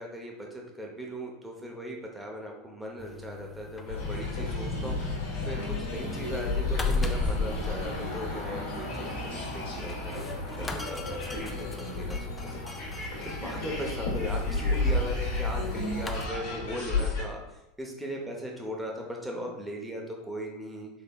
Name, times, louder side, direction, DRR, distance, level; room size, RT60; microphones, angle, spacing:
voice 1, 0.0-20.9, equal, 10° right, 0 dB, 0.8 m, -39 dB
sound 1, 3.0-16.3, left 2 dB, 15° left, 0.4 m, -38 dB
sound 2, 3.9-17.2, left 2 dB, 70° left, 1.0 m, -32 dB
3.7 x 3.2 x 2.2 m, 0.90 s
hypercardioid pair, 85°, 0 cm